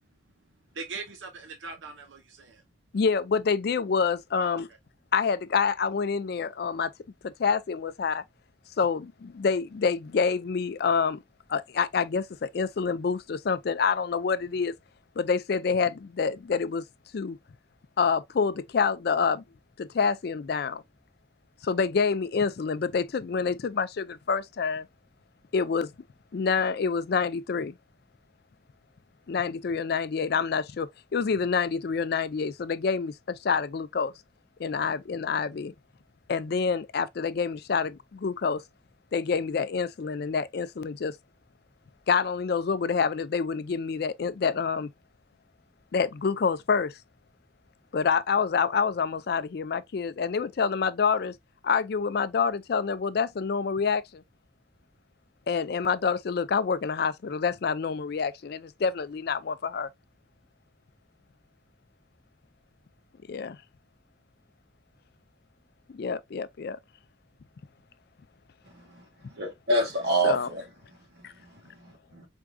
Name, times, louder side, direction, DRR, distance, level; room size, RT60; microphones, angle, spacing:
voice 1, 0.7-2.6 4.4-4.6, right 4 dB, 75° right, 0.8 m, -40 dB
voice 2, 2.9-4.7 5.1-6.9 7.2-8.2 8.8-11.2 11.5-14.7 15.2-16.8 17.1-17.4 18.0-19.4 19.8-20.8 21.6-24.9 25.5-25.9 26.3-27.7 29.3-34.1 34.6-35.7 36.3-38.6 39.1-41.2 42.1-44.9 45.9-47.0 47.9-51.3 51.6-54.2 55.5-59.9 63.3-63.6 65.9-66.8 70.2-70.5, left 5 dB, 55° left, 0.4 m, -27 dB
voice 3, 68.6-70.6 71.1-72.3, right 1 dB, 55° right, 2.4 m, -29 dB
4.8 x 3.6 x 2.2 m
head